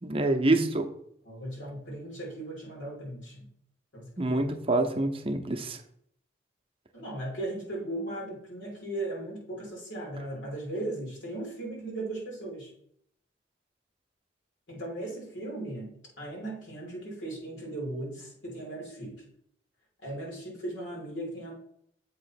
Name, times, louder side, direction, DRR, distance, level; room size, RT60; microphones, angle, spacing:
voice 1, 0.0-0.9 4.2-5.8, right 2 dB, 30° right, 5 dB, 0.7 m, -26 dB
voice 2, 1.2-3.5 3.9-4.6 6.9-12.7 14.7-19.3 20.0-21.5, right 1 dB, 80° left, -3 dB, 3.1 m, -37 dB
7.6 x 3.1 x 5.8 m, 0.68 s
head